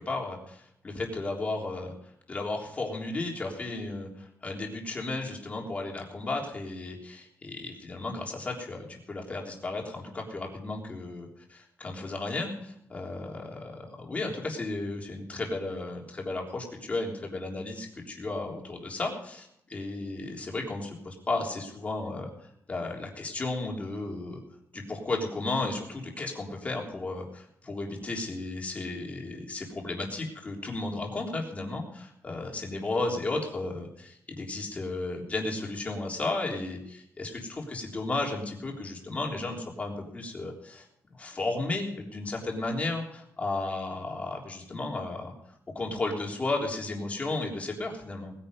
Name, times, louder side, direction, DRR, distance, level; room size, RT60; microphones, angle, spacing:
voice 1, 0.0-1.9 2.3-24.4 24.7-40.9 41.2-45.3 45.7-48.3, left 2 dB, 25° left, -1 dB, 3.5 m, -34 dB
20.0 x 10.0 x 5.4 m, 0.74 s
wide cardioid pair, 165°, 6 cm